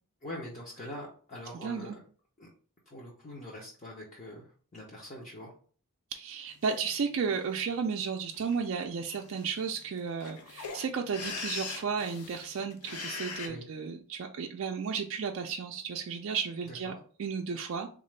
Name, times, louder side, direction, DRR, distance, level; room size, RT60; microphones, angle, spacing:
voice 1, 0.2-2.0 2.4-2.5 2.9-5.5 13.4-13.7 16.7-17.0, left 1 dB, 35° left, -4 dB, 0.6 m, -44 dB
voice 2, 1.6-2.0 6.1-16.9 17.2-17.9, right 6 dB, 60° right, 2 dB, 0.3 m, -33 dB
sound 1, 6.6-6.7 7.2-7.7 8.3-8.6 8.8-8.9 9.1-13.5, left 4 dB, 90° left, 0.7 m, -41 dB
3.6 x 2.4 x 3.2 m, 0.43 s
head